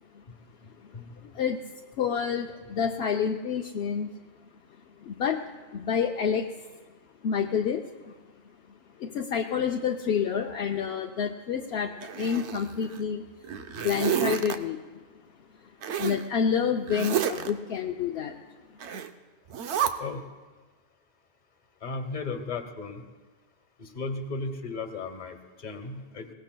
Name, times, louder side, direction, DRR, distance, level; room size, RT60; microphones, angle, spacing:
voice 1, 1.2-1.6 2.0-4.1 5.0-5.4 5.7-6.5 7.2-8.1 9.0-13.2 13.7-14.8 16.0-18.4, left 7 dB, 70° left, 2 dB, 0.8 m, -28 dB
Zipper (clothing), 12.0-13.0 13.4-14.6 15.8-16.2 16.9-17.5 18.8-19.1 19.5-19.9, right 8 dB, 85° right, 1.0 m, -30 dB
voice 2, 21.8-23.0 23.8-26.3, left 3 dB, 45° left, 6 dB, 1.2 m, -35 dB
21.0 x 18.0 x 2.2 m, 1.3 s
omnidirectional pair, 1.1 m